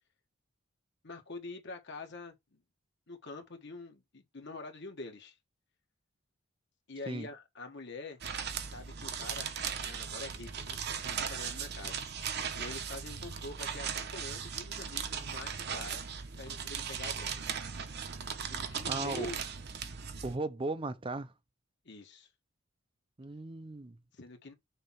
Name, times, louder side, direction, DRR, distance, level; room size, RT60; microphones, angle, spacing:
voice 1, 1.0-2.6 3.1-5.4 6.9-8.2 8.6-9.5 9.8-12.1 12.5-16.0 16.4-17.5 18.4-19.4 21.9-22.3 24.1-24.5, left 3 dB, 55° left, 1.6 m, -45 dB
sound 1, 8.2-20.4, right 7 dB, 50° right, 0.9 m, -38 dB
voice 2, 18.9-19.3 20.2-21.3 23.2-24.0, right 2 dB, 25° right, 0.6 m, -36 dB
6.5 x 3.0 x 5.8 m
head